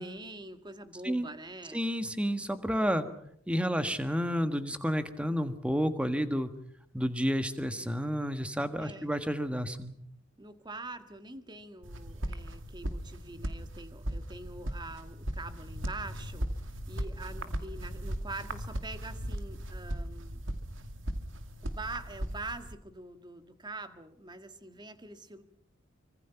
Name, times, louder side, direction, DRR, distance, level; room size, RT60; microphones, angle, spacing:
voice 1, 0.0-1.8 8.8-9.1 10.4-16.5 16.9-20.4 21.6-25.4, right 2 dB, 20° right, 9 dB, 1.7 m, -44 dB
voice 2, 1.7-3.1 3.5-6.5 6.9-10.0, equal, 5° right, 9 dB, 1.6 m, -30 dB
sound 1, 11.8-22.7, equal, 70° right, 2.4 m, -38 dB
25.0 x 25.0 x 5.9 m, 0.67 s
head